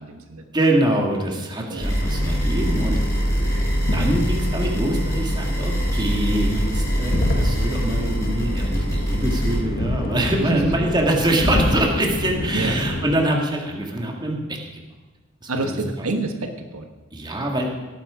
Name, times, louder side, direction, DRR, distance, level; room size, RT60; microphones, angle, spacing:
voice 1, 0.0-0.4 1.7-1.9 10.5-10.6 12.5-12.8 15.5-16.9, right 2 dB, 90° right, 5 dB, 1.4 m, -27 dB
voice 2, 0.5-3.0 3.9-14.8 15.4-15.8 17.1-17.7, right 1 dB, 20° right, 0 dB, 2.0 m, -24 dB
sound 1, 1.8-9.6, equal, 15° left, 4.4 m, -24 dB
sound 2, 2.0-13.1, left 1 dB, 45° left, 1.4 m, -28 dB
18.0 x 8.9 x 5.0 m, 1.2 s
head